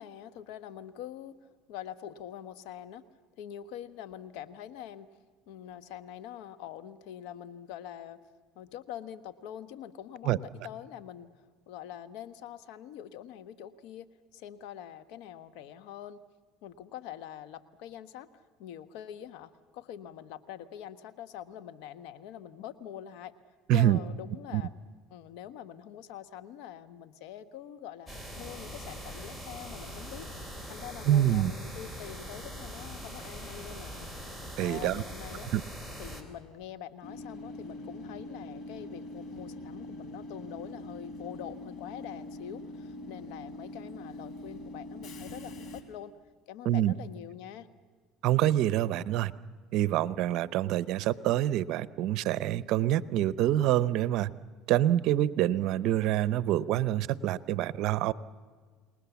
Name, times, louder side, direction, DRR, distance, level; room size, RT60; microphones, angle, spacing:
voice 1, 0.0-1.4 1.7-3.0 3.4-5.1 5.5-8.2 8.5-11.3 11.7-16.2 16.6-23.3 23.7-24.7 25.1-28.1 28.4-34.1 34.6-35.5 36.0-46.1 46.5-47.7, left 10 dB, 75° left, 13 dB, 1.2 m, -44 dB
sound 1, 28.1-36.2, equal, 15° left, 3.9 m, -42 dB
voice 2, 31.1-31.5 34.6-35.0 35.5-35.6 46.6-46.9 48.2-49.3 49.7-54.3 54.7-58.1, right 13 dB, 65° right, 17 dB, 0.8 m, -26 dB
Train / Subway metro underground, 37.0-45.8, left 1 dB, 50° left, 3.4 m, -43 dB
30.0 x 19.5 x 7.1 m, 1.5 s
supercardioid pair, 100°, 0 cm